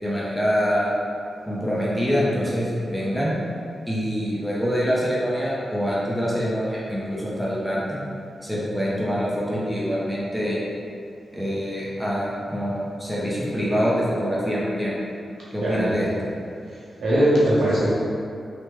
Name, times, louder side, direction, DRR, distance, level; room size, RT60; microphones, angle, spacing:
voice 1, 0.0-0.9 1.5-3.3 3.9-8.0 8.4-10.6 11.3-15.0 15.5-16.3, equal, ahead, -7 dB, 0.6 m, -25 dB
voice 2, 15.6-16.0 16.7-17.9, right 1 dB, 80° right, -8 dB, 0.8 m, -21 dB
3.3 x 2.2 x 3.0 m, 2.5 s
wide cardioid pair, 105°, 0 cm